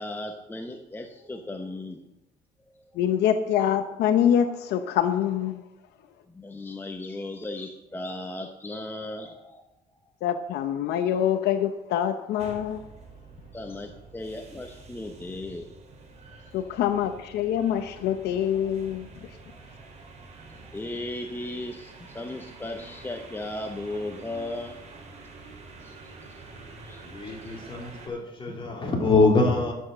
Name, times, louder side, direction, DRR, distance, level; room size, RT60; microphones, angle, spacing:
voice 1, 0.0-2.0 2.7-3.0 6.3-9.6 13.5-15.7 16.7-16.8 20.5-24.8 25.8-26.2 26.8-27.6, left 2 dB, 10° left, 4 dB, 1.0 m, -36 dB
voice 2, 3.0-5.6 10.2-12.8 16.5-19.1, left 9 dB, 80° left, 9 dB, 0.8 m, -25 dB
sound 1, 12.4-28.1, right 3 dB, 40° right, 4.3 m, -47 dB
voice 3, 27.0-29.7, left 3 dB, 30° left, 0 dB, 3.3 m, -24 dB
11.5 x 7.8 x 6.7 m, 0.94 s
cardioid pair, 110°, 17 cm